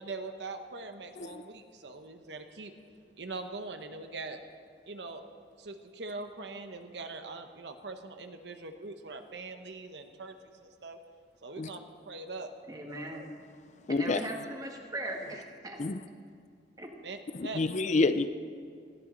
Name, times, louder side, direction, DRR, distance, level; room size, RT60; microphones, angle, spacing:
voice 1, 0.0-2.7 3.2-4.4 4.9-5.2 5.6-11.0 11.4-12.5 15.3-15.4 17.0-17.2 17.4-17.6, right 3 dB, 75° right, 7 dB, 1.0 m, -42 dB
voice 2, 12.7-13.3 13.9-15.8 16.8-16.9, right 1 dB, 20° right, 1 dB, 1.7 m, -39 dB
voice 3, 13.9-14.2 15.8-16.0 17.4-18.3, left 3 dB, 40° left, 11 dB, 0.5 m, -28 dB
19.5 x 14.5 x 4.0 m, 2.2 s
head